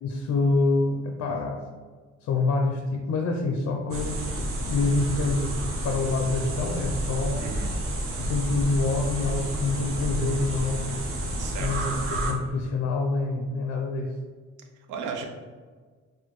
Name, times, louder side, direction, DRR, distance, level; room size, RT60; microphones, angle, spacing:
voice 1, 0.0-1.6 2.2-5.6 5.8-7.6 8.2-11.0 11.6-14.1, left 3 dB, 55° left, 3 dB, 0.4 m, -26 dB
sound 1, 3.9-12.3, right 1 dB, 45° right, 0.7 m, -30 dB
voice 2, 7.4-7.7 11.4-11.9 14.7-15.2, right 5 dB, 85° right, 3 dB, 0.5 m, -35 dB
4.2 x 2.1 x 3.0 m, 1.5 s
cardioid pair, 90°, 30 cm